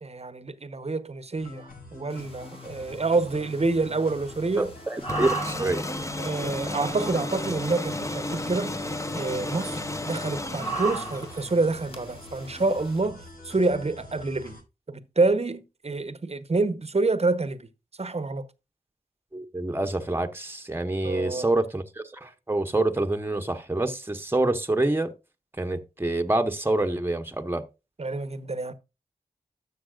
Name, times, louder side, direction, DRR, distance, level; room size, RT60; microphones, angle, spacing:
voice 1, 0.0-4.7 6.2-8.8 9.2-14.6 14.9-17.7 18.0-18.5 21.0-21.5 28.0-28.7, right 3 dB, 45° right, 0.9 m, -27 dB
sound 1, 1.3-14.6, left 2 dB, 75° left, 6.2 m, -46 dB
sound 2, 2.1-13.0, right 3 dB, 40° left, 2.6 m, -39 dB
voice 2, 4.6-5.9 19.3-25.1 25.6-27.6, right 2 dB, 15° right, 1.0 m, -27 dB
sound 3, 5.1-11.6, left 1 dB, 20° left, 0.8 m, -33 dB
13.0 x 7.0 x 2.4 m
cardioid pair, 40°, 16 cm